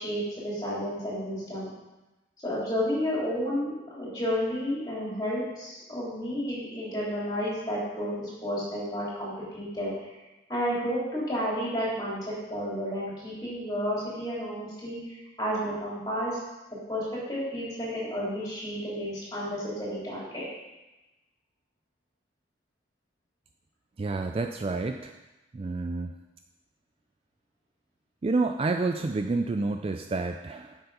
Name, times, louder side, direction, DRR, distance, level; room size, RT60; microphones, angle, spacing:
voice 1, 0.0-1.7 2.4-10.0 10.5-16.4 16.9-20.4, equal, 20° left, -7 dB, 3.7 m, -31 dB
voice 2, 24.0-25.2 25.5-26.2 28.2-30.8, right 3 dB, 30° right, 6 dB, 0.3 m, -29 dB
7.9 x 7.1 x 5.0 m, 1.0 s
head